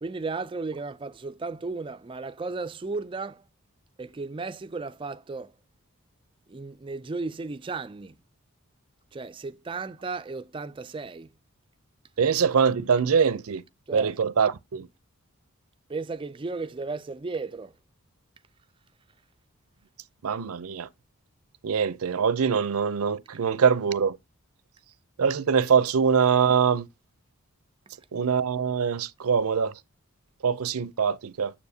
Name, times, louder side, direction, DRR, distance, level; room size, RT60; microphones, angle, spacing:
voice 1, 0.0-3.4 4.0-5.5 6.5-8.1 9.1-11.3 13.9-14.1 15.9-17.7, right 3 dB, 20° right, 0.3 m, -34 dB
voice 2, 12.2-13.6 13.9-14.9 20.2-20.9 21.6-24.2 25.2-26.9 28.1-29.7 30.4-31.5, right 6 dB, 80° right, 0.5 m, -23 dB
7.1 x 7.0 x 2.7 m
head